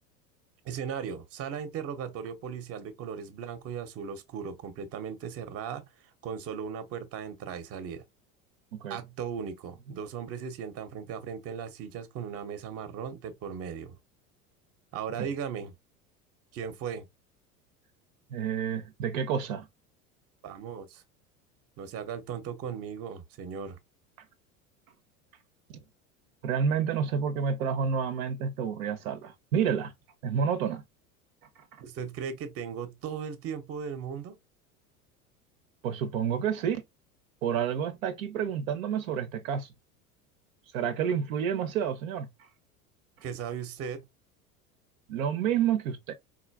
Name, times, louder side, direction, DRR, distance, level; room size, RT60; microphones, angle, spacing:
voice 1, 0.6-8.0 8.9-14.0 14.9-15.7 16.5-17.1 20.4-21.0 21.8-23.8 31.8-34.4 43.2-44.1, right 7 dB, 35° right, 0.7 m, -37 dB
voice 2, 18.3-19.7 25.7-25.8 26.4-29.9 30.2-30.8 35.8-36.8 37.4-39.7 40.7-42.5 45.1-46.1, right 7 dB, 70° right, 0.6 m, -29 dB
3.8 x 2.5 x 2.2 m
hypercardioid pair, 80°, 43 cm